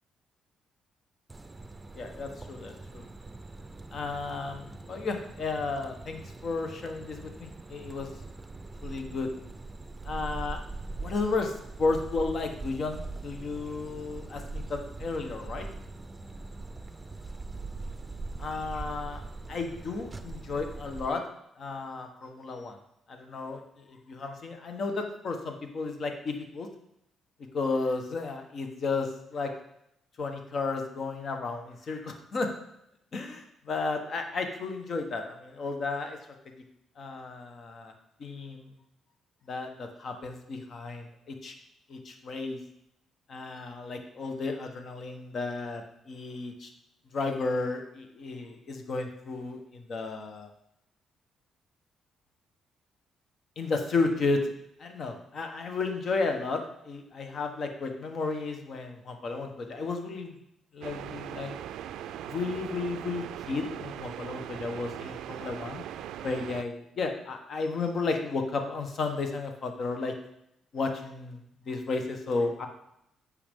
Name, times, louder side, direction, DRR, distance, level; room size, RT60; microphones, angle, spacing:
sound 1, 1.3-21.1, right 3 dB, 20° right, 0.6 m, -42 dB
voice 1, 1.9-3.0 3.9-8.1 8.8-9.3 10.0-10.6 11.0-11.5 11.8-15.6 18.4-19.2 19.5-21.2 21.6-22.8 23.1-26.7 27.5-29.5 30.2-32.5 33.1-36.2 37.0-37.9 38.2-38.7 39.5-41.5 41.9-42.6 43.3-46.7 47.1-50.5 53.6-54.5 54.8-60.4 60.7-61.5 62.3-65.8 66.2-70.1 70.7-71.4 71.6-72.7, left 3 dB, 55° left, 5 dB, 1.2 m, -33 dB
sound 2, 60.8-66.6, right 10 dB, 85° right, 0.3 m, -40 dB
8.6 x 6.4 x 3.6 m, 0.78 s
cardioid pair, 90°, 0 cm